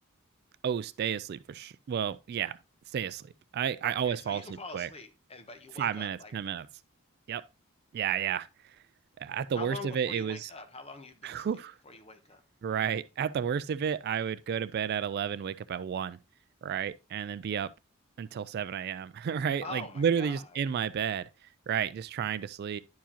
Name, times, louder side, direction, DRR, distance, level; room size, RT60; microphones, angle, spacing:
voice 1, 0.6-2.6 2.9-4.4 4.7-4.9 5.8-6.7 7.3-7.4 7.9-8.5 9.2-10.5 11.2-11.7 12.6-16.2 16.6-17.7 18.2-21.2 21.7-22.8, right 8 dB, 50° right, 0.3 m, -31 dB
voice 2, 3.8-6.3 9.5-12.4 19.6-20.6, left 3 dB, 30° left, 0.9 m, -44 dB
10.5 x 4.7 x 2.8 m
head